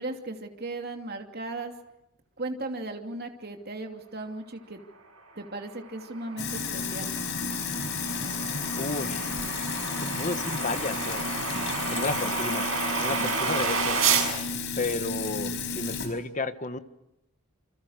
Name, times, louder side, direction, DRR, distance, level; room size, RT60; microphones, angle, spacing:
voice 1, 0.0-1.7 2.4-4.8 5.4-7.1 13.2-13.4, right 2 dB, 45° right, 4 dB, 2.8 m, -36 dB
sound 1, 5.6-14.3, right 5 dB, 65° right, 7.1 m, -31 dB
Sink (filling or washing), 6.4-16.1, left 4 dB, 55° left, 5.1 m, -32 dB
voice 2, 8.7-9.4 10.2-11.3 11.9-12.7 13.0-14.0 14.8-16.8, left 2 dB, 35° left, 11 dB, 1.4 m, -32 dB
28.5 x 26.5 x 6.6 m, 0.86 s
head